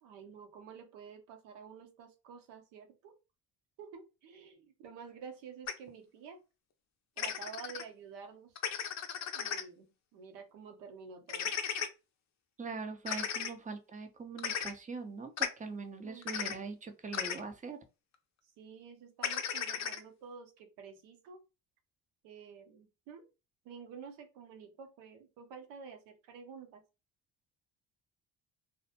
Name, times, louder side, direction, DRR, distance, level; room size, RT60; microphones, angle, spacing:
voice 1, 0.0-3.1 3.8-6.4 7.2-8.6 9.3-11.5 16.0-16.3 18.6-21.4 22.2-23.3 23.6-26.8, right 6 dB, 70° right, 0.8 m, -50 dB
sound 1, 5.7-5.8 7.2-7.8 8.6-9.6 11.3-11.9 13.1-13.5 14.4-14.7 15.4-15.5 16.2-16.5 17.1-17.4 19.2-20.0, left 8 dB, 40° left, 0.5 m, -35 dB
voice 2, 12.6-17.8, right 4 dB, 20° right, 0.6 m, -42 dB
2.1 x 2.0 x 2.8 m
hypercardioid pair, 65°, 44 cm